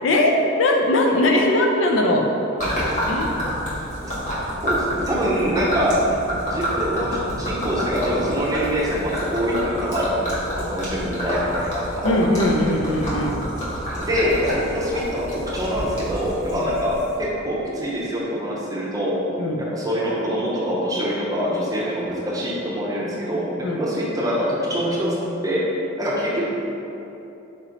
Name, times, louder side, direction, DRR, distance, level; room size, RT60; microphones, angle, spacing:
voice 1, 0.6-2.3 3.1-3.3 12.0-13.4 16.5-16.6 19.4-19.6 23.6-23.8, left 1 dB, 75° left, 2 dB, 0.5 m, -20 dB
Gurgling / Liquid, 2.6-17.2, equal, 40° left, 1.1 m, -28 dB
voice 2, 4.6-6.0 6.5-12.1 14.0-19.2 19.6-25.1 25.4-25.6 26.0-26.4, equal, 20° right, -6 dB, 0.7 m, -24 dB
4.4 x 3.0 x 3.8 m, 3.0 s
head